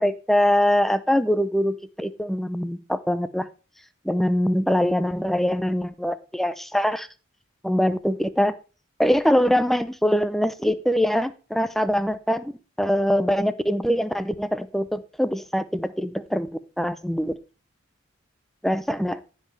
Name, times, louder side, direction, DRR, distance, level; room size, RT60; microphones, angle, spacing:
voice 1, 0.0-3.5 4.0-7.1 7.6-8.5 9.0-12.5 12.8-16.5 16.8-17.3 18.6-19.2, equal, ahead, 13 dB, 0.5 m, -23 dB
15.0 x 5.6 x 3.3 m, 0.33 s
head